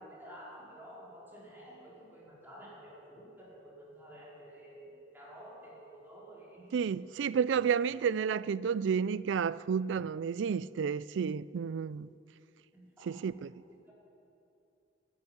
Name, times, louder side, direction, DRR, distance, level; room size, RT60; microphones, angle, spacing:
voice 1, 0.0-6.8 12.7-13.1 13.7-13.9, equal, 10° right, 4.6 m, -51 dB
voice 2, 6.7-12.1 13.0-13.5, right 6 dB, 85° right, 0.4 m, -31 dB
12.5 x 10.5 x 10.0 m
head